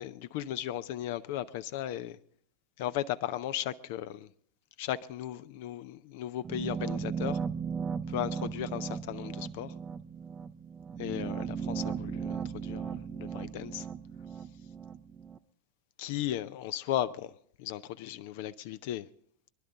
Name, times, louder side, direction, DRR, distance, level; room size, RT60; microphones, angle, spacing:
voice 1, 0.0-2.2 2.8-4.3 4.8-7.4 8.1-9.8 11.0-13.9 16.0-17.3 17.6-19.1, left 12 dB, 50° left, 0.5 m, -36 dB
sound 1, 6.4-15.4, right 6 dB, 20° right, 0.5 m, -36 dB
23.5 x 11.5 x 3.8 m
figure-of-eight pair, 90°, 0 cm